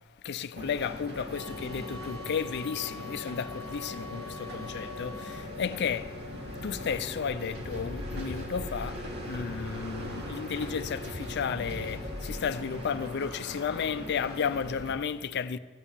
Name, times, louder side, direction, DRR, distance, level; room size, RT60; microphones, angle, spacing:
voice 1, 0.2-15.6, left 6 dB, 50° left, 0.4 m, -33 dB
sound 1, 0.6-14.9, left 1 dB, 50° right, 1.8 m, -40 dB
sound 2, 1.3-5.5, left 2 dB, 70° right, 0.9 m, -45 dB
sound 3, 7.5-14.5, equal, 90° right, 2.4 m, -44 dB
13.5 x 9.1 x 7.0 m
head